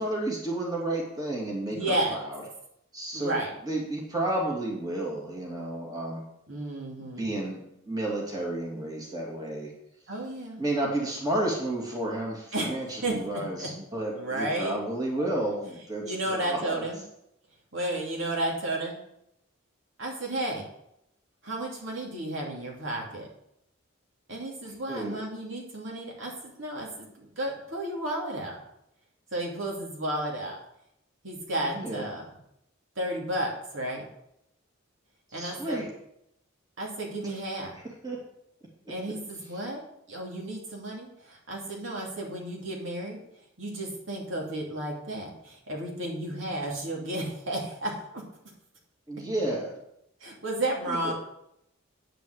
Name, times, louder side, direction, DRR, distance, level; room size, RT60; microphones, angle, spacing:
voice 1, 0.0-2.4 2.9-3.4 3.6-6.2 7.2-9.7 10.6-16.9 24.9-25.2 31.7-32.1 35.3-35.9 37.2-37.4 37.7-38.2 49.1-49.7 50.9-51.1, right 1 dB, 20° right, -2 dB, 2.5 m, -31 dB
voice 2, 1.7-2.2 3.1-3.5 6.5-7.3 10.1-10.6 12.5-12.8 13.0-13.7 14.1-14.8 16.0-17.0 17.7-19.0 20.0-20.6 21.4-23.3 24.3-28.6 29.3-30.6 31.2-32.3 33.0-34.0 35.3-35.8 36.8-37.8 38.9-39.8 40.1-43.2 43.6-48.2 50.2-51.1, right 1 dB, 70° right, -2 dB, 2.7 m, -32 dB
9.3 x 5.2 x 7.9 m, 0.78 s
head